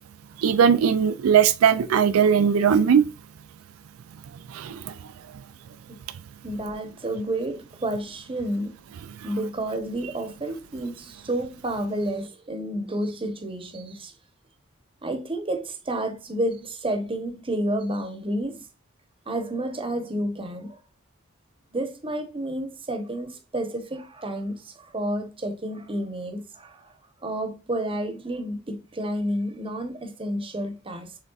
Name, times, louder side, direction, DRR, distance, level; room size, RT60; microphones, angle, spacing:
voice 1, 0.4-3.0 4.5-4.9, right 7 dB, 90° right, 0.4 m, -19 dB
voice 2, 6.4-8.7 9.2-14.1 15.0-18.7 19.3-20.8 21.7-26.9 27.2-31.2, right 1 dB, 25° right, 0.9 m, -30 dB
6.4 x 3.5 x 2.4 m
head